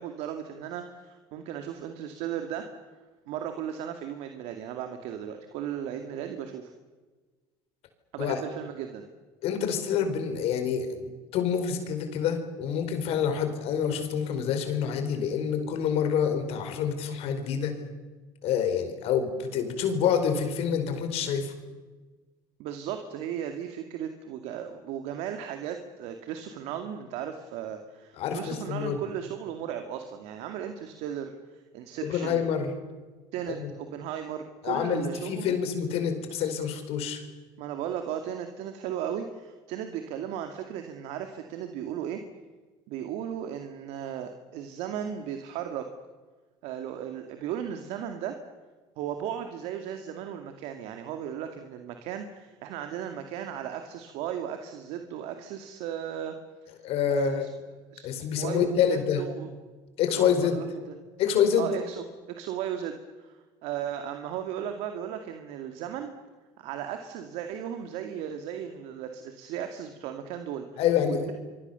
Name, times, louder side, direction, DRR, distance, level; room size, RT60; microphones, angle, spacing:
voice 1, 0.0-2.7 3.3-6.7 8.1-9.1 22.6-32.4 33.3-35.6 37.6-42.2 42.9-45.9 46.6-48.4 49.0-56.4 57.1-57.5 57.9-58.1 58.4-59.5 60.1-60.9 61.5-66.1 66.6-70.7 71.1-71.3, right 9 dB, 75° right, 6 dB, 2.3 m, -36 dB
voice 2, 9.4-17.8 18.4-21.5 28.2-29.0 32.0-32.7 33.5-33.7 34.6-37.2 56.8-57.5 58.0-59.2 60.0-60.6 61.2-61.7 70.8-71.2, left 8 dB, 65° left, 8 dB, 4.7 m, -27 dB
27.5 x 24.0 x 7.0 m, 1.3 s
supercardioid pair, 85°, 11 cm